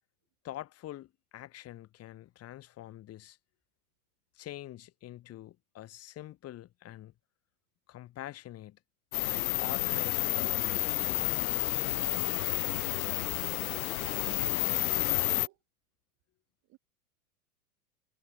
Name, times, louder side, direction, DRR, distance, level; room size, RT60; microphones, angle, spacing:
voice 1, 0.4-3.4 4.4-7.1 7.9-8.8 9.3-10.8 11.0-11.3, left 14 dB, 35° left, 3.0 m, -45 dB
sound 1, 9.1-15.5, left 17 dB, 70° left, 0.6 m, -30 dB
voice 2, 14.0-14.9 15.1-15.6 16.6-16.8, right 19 dB, 40° right, 3.3 m, -56 dB
hypercardioid pair, 105°, 44 cm